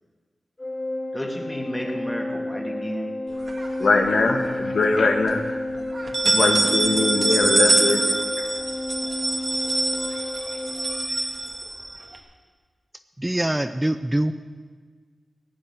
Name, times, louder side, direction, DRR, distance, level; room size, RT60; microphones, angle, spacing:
Organ, 0.6-11.3, left 1 dB, 35° left, 1.3 m, -31 dB
voice 1, 1.1-3.2, equal, 15° left, 1 dB, 2.9 m, -32 dB
sound 1, 3.5-4.4 4.8-4.9 5.3-5.4 5.9-12.2, right 2 dB, 50° right, 1.8 m, -24 dB
voice 2, 3.8-5.4 6.2-8.0, left 3 dB, 75° left, 4 dB, 1.6 m, -21 dB
voice 3, 13.2-14.3, right 1 dB, 15° right, 10 dB, 0.5 m, -23 dB
16.5 x 7.1 x 9.3 m, 1.5 s
cardioid pair, 60°, 0 cm